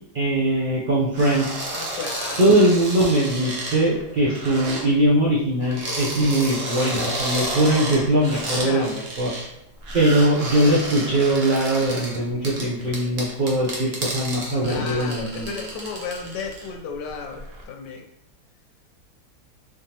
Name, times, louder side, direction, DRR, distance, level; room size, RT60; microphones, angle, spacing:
voice 1, 0.1-1.5 2.4-9.3 9.9-15.7, right 1 dB, 75° right, -7 dB, 0.4 m, -21 dB
sound 1, 1.1-4.8 5.6-9.5 9.8-16.7 17.1-17.6, right 1 dB, 45° right, 0.9 m, -31 dB
voice 2, 1.7-2.5 8.6-9.0 14.6-18.1, left 5 dB, 80° left, 3 dB, 1.2 m, -33 dB
3.6 x 3.5 x 2.8 m, 0.80 s
omnidirectional pair, 1.9 m